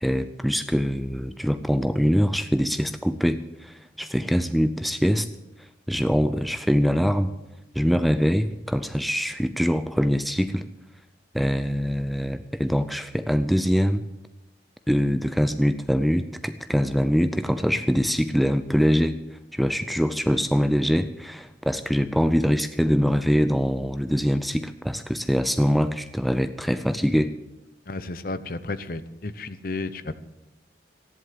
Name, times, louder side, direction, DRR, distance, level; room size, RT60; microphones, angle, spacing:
voice 1, 0.0-5.3 5.9-7.3 7.8-10.7 11.3-14.0 14.9-19.2 19.5-27.3, equal, ahead, 10 dB, 0.5 m, -23 dB
voice 2, 27.9-30.2, left 2 dB, 50° left, 13 dB, 0.8 m, -32 dB
14.0 x 11.0 x 7.7 m, 0.93 s
head